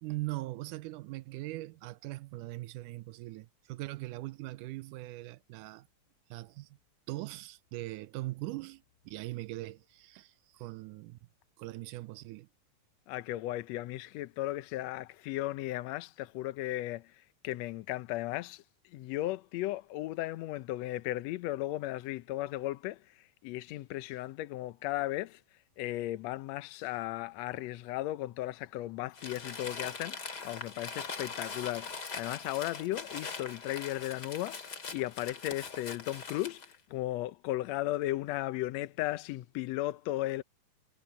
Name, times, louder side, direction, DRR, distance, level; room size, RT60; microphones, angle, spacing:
voice 1, 0.0-5.9 6.3-6.8 7.1-11.2 11.6-12.5, right 18 dB, 80° right, 2.1 m, -41 dB
voice 2, 13.1-25.4 25.8-40.4, left 16 dB, 75° left, 1.6 m, -36 dB
Crumpling crinkling, 29.1-36.7, left 5 dB, 35° left, 2.5 m, -42 dB
omnidirectional pair, 3.8 m